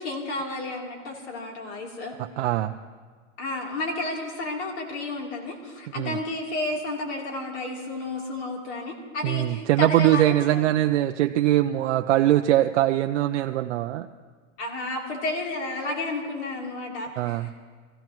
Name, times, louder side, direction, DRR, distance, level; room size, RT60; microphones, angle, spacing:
voice 1, 0.0-2.2 3.4-10.6 14.6-17.5, left 2 dB, 55° left, -1 dB, 3.4 m, -32 dB
voice 2, 2.2-2.8 6.0-6.2 9.2-14.1 17.2-17.5, right 14 dB, 60° right, 5 dB, 0.5 m, -22 dB
24.0 x 15.5 x 3.0 m, 1.5 s
supercardioid pair, 155°, 40 cm